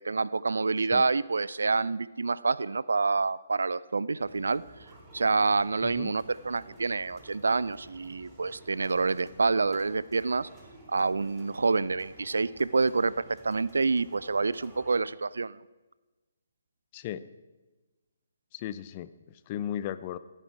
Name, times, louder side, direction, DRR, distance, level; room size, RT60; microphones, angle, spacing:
voice 1, 0.0-4.6 5.1-10.5 10.9-15.6, right 4 dB, 75° right, 19 dB, 0.4 m, -27 dB
sound 1, 4.2-15.0, right 2 dB, 20° right, 2.4 m, -53 dB
voice 2, 5.8-6.1 16.9-17.3 18.5-19.1 19.5-20.2, left 11 dB, 35° left, 15 dB, 0.6 m, -35 dB
16.5 x 10.0 x 4.6 m, 1.2 s
figure-of-eight pair, 135°, 0 cm